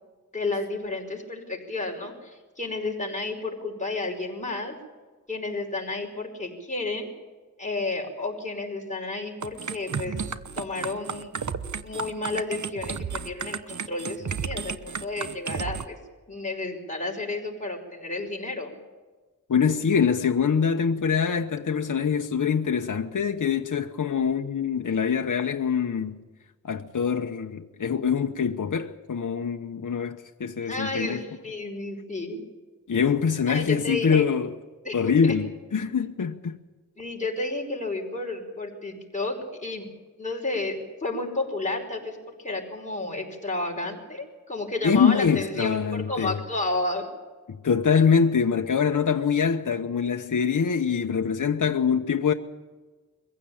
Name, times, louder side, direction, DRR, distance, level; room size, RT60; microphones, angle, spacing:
voice 1, 0.3-4.8 5.3-7.1 7.6-10.2 10.6-11.4 11.8-16.0 16.3-18.7 30.6-32.4 33.5-34.3 34.8-35.3 37.0-39.9 40.2-40.8 41.0-47.1, left 2 dB, 25° left, 5.3 m, -31 dB
sound 1, 9.4-15.8, right 6 dB, 60° right, 1.0 m, -33 dB
voice 2, 19.5-26.2 26.6-31.2 32.9-34.5 34.9-36.6 44.8-46.4 47.6-52.3, left 6 dB, 65° left, 1.0 m, -24 dB
23.0 x 15.5 x 8.8 m
wide cardioid pair, 80°, 33 cm